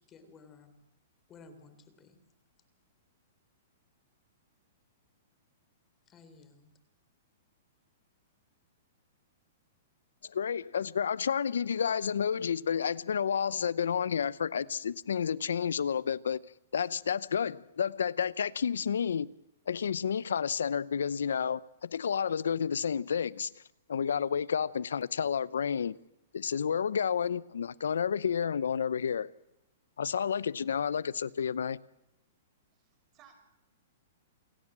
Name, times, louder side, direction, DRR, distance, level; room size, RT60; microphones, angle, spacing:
voice 1, 0.1-0.8 1.3-2.2 6.1-6.7, left 4 dB, 25° left, 3.7 m, -55 dB
voice 2, 10.2-16.4 16.7-19.3 19.7-23.5 23.9-26.0 26.3-29.3 30.0-31.8, left 7 dB, 85° left, 0.7 m, -30 dB
voice 3, 32.8-33.4, right 8 dB, 35° right, 6.3 m, -60 dB
28.5 x 16.5 x 7.5 m
hypercardioid pair, 135°, 0 cm